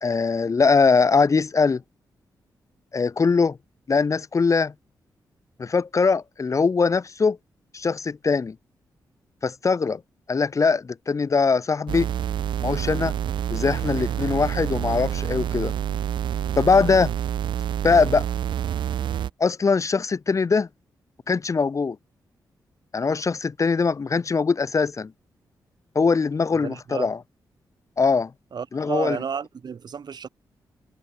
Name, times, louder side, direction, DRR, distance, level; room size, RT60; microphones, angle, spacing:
voice 1, 0.0-1.8 2.9-3.6 3.9-4.7 5.6-7.4 7.7-8.5 9.4-10.0 10.3-12.1 12.6-13.2 13.5-15.7 16.6-17.1 17.8-18.3 19.4-20.7 21.3-22.0 22.9-25.1 25.9-27.2 28.0-28.3 28.7-29.2, left 4 dB, 40° left, 0.9 m, -21 dB
sound 1, 11.9-19.3, right 10 dB, 80° right, 1.1 m, -27 dB
voice 2, 26.5-27.1 28.5-30.3, right 6 dB, 60° right, 2.5 m, -32 dB
cardioid pair, 60°, 8 cm